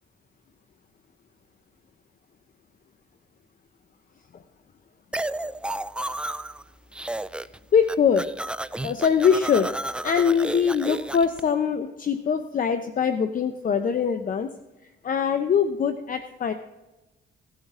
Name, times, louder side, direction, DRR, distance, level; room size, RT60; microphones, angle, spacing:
sound 1, 5.1-6.6 6.9-7.6 7.8-11.4, right 1 dB, 5° right, 0.3 m, -32 dB
voice 1, 7.7-8.3 8.8-9.7 10.0-14.5 15.0-16.5, left 7 dB, 45° left, 8 dB, 0.8 m, -22 dB
17.5 x 7.4 x 3.7 m, 1.0 s
cardioid pair, 90°, 20 cm